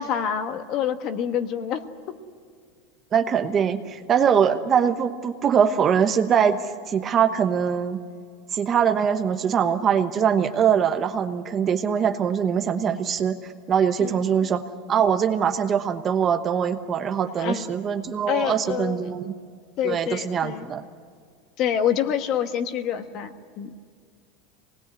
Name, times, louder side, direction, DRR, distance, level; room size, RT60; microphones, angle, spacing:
voice 1, 0.0-1.8 14.0-14.2 17.4-17.8 18.3-19.1 19.8-20.7 21.6-23.7, left 9 dB, 35° left, 9 dB, 1.4 m, -27 dB
voice 2, 3.1-6.6 6.9-8.0 8.5-14.6 14.9-19.3 19.8-20.8, right 7 dB, 20° right, 8 dB, 1.0 m, -22 dB
25.5 x 20.0 x 9.6 m, 2.1 s
supercardioid pair, 175°, 0 cm